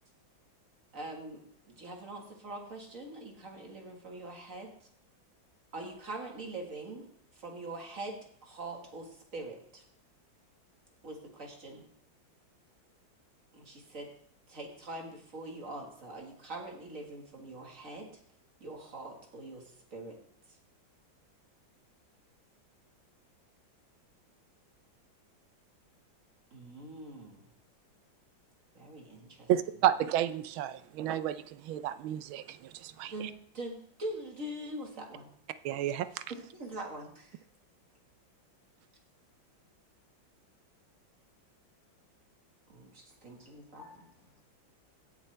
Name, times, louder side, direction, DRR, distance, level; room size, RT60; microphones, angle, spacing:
voice 1, 0.9-4.7 5.7-7.1 7.3-8.2 8.4-9.8 11.0-11.9 13.5-14.1 14.5-18.1 18.6-20.2 26.5-27.4 28.7-29.5 33.1-35.3 36.3-37.4 42.7-43.8, right 2 dB, 40° right, 1 dB, 2.1 m, -43 dB
voice 2, 29.5-33.3 35.6-36.1, right 11 dB, 85° right, 13 dB, 1.4 m, -31 dB
voice 3, 43.3-44.4, left 6 dB, 45° left, 1 dB, 2.2 m, -57 dB
16.5 x 7.2 x 3.4 m, 0.64 s
omnidirectional pair, 2.2 m